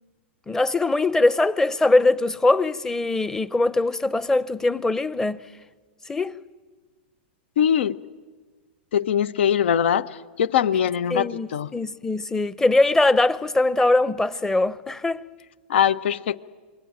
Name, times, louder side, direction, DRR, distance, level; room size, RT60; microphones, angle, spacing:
voice 1, 0.5-5.4 6.1-6.3 11.1-15.3, left 2 dB, 10° left, 0.8 m, -21 dB
voice 2, 7.6-8.0 8.9-10.1 10.4-11.7 15.7-16.4, left 9 dB, 75° left, 1.1 m, -21 dB
27.5 x 23.5 x 9.0 m
hypercardioid pair, 130°, 6 cm